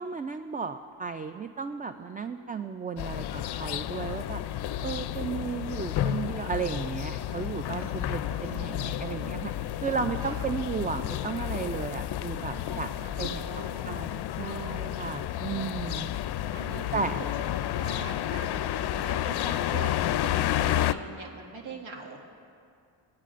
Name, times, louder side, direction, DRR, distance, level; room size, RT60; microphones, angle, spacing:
voice 1, 0.0-4.4 4.8-9.5 9.8-12.9 13.2-13.4 13.8-16.1 16.9-17.2, right 5 dB, 20° right, 9 dB, 0.3 m, -34 dB
voice 2, 1.8-2.7 7.8-8.9 10.2-10.5 12.4-13.8 15.5-16.1 16.5-22.2, right 3 dB, 70° right, -2 dB, 2.0 m, -43 dB
sound 1, 3.0-20.9, left 12 dB, 55° left, 0.5 m, -31 dB
19.5 x 8.5 x 2.5 m, 2.4 s
supercardioid pair, 60°, 49 cm